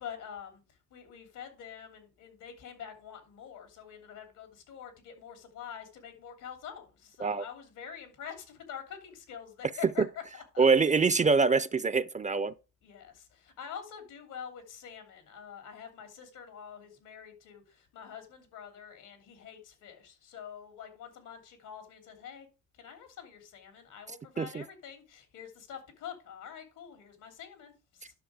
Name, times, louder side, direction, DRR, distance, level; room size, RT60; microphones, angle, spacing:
voice 1, 0.0-10.7 12.8-22.5 22.7-28.2, left 8 dB, 85° left, 3.0 m, -46 dB
voice 2, 10.6-12.5 24.4-24.6, right 4 dB, 25° right, 0.5 m, -24 dB
10.5 x 6.4 x 4.9 m
cardioid pair, 90°, 30 cm